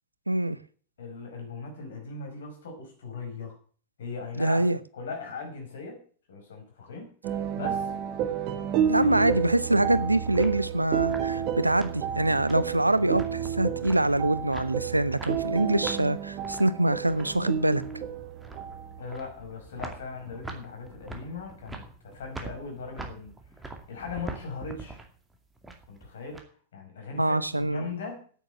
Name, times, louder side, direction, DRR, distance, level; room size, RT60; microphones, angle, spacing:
voice 1, 0.3-0.6 4.4-4.8 8.9-17.8 27.2-27.9, right 1 dB, 85° right, 0.7 m, -24 dB
voice 2, 1.0-3.6 4.0-6.0 6.3-7.1 7.5-7.9 9.0-9.4 19.0-23.3 23.9-25.0 25.9-26.4 26.7-28.2, left 4 dB, 60° left, 5.2 m, -39 dB
sound 1, 7.2-19.0, right 8 dB, 45° right, 1.5 m, -31 dB
sound 2, 9.8-26.4, right 3 dB, 10° right, 2.3 m, -45 dB
9.2 x 9.0 x 7.6 m
figure-of-eight pair, 90°, 0 cm